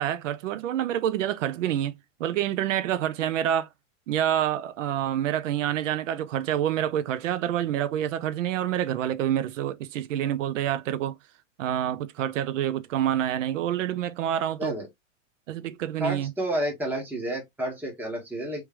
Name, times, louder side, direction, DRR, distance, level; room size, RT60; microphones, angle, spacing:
voice 1, 0.0-1.9 2.2-3.7 4.1-11.1 11.6-14.7 15.5-16.3, right 11 dB, 80° right, 0.7 m, -27 dB
voice 2, 16.0-18.6, right 1 dB, 5° right, 1.3 m, -30 dB
3.2 x 3.1 x 3.3 m
supercardioid pair, 155°, 38 cm